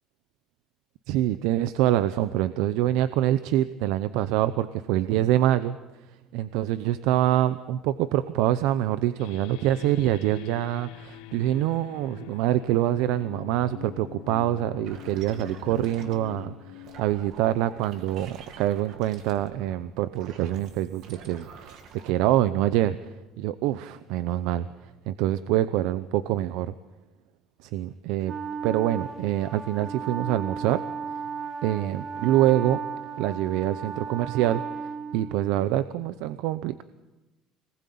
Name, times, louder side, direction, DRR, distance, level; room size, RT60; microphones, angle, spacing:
voice 1, 1.1-5.8 6.3-21.8 22.0-23.1 23.4-26.7 27.6-28.4 28.6-30.8 31.6-32.8 33.2-36.8, right 13 dB, 70° right, 14 dB, 0.7 m, -25 dB
sound 1, 9.2-18.5, left 16 dB, 80° left, 0.8 m, -44 dB
sound 2, 14.8-16.5 16.7-22.1, right 6 dB, 50° right, 2.3 m, -47 dB
Wind instrument woodwind instrument, 28.2-35.8, right 6 dB, 30° right, 1.3 m, -35 dB
25.5 x 19.5 x 8.6 m, 1.1 s
cardioid pair, 175°, 0 cm